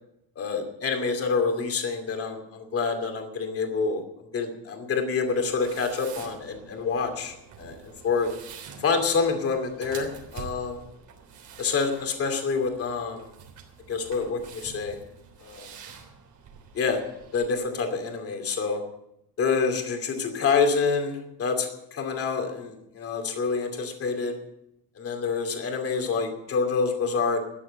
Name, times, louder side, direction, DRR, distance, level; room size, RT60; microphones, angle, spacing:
voice 1, 0.4-4.0 4.3-7.7 8.0-8.3 8.8-10.8 11.6-13.3 13.9-15.0 15.4-15.7 16.7-17.0 17.3-18.8 19.4-24.4 25.0-27.4, left 5 dB, 35° left, 5 dB, 2.6 m, -27 dB
sound 1, 5.3-17.5, right 6 dB, 50° right, 3.5 m, -47 dB
13.5 x 9.9 x 8.6 m, 0.82 s
cardioid pair, 165°, 39 cm